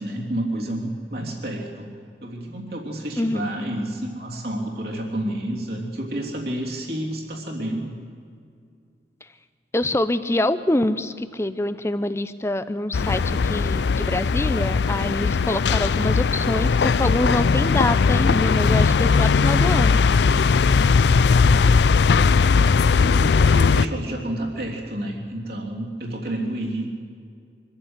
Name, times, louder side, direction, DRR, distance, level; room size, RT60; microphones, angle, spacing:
voice 1, 0.0-1.9 2.2-8.0 23.0-26.9, right 1 dB, 55° right, -1 dB, 3.2 m, -30 dB
voice 2, 3.2-3.5 9.7-20.0, left 1 dB, 15° left, 12 dB, 0.6 m, -25 dB
sound 1, 12.9-23.8, left 5 dB, 75° left, 0.4 m, -18 dB
24.5 x 14.5 x 8.1 m, 2.3 s
head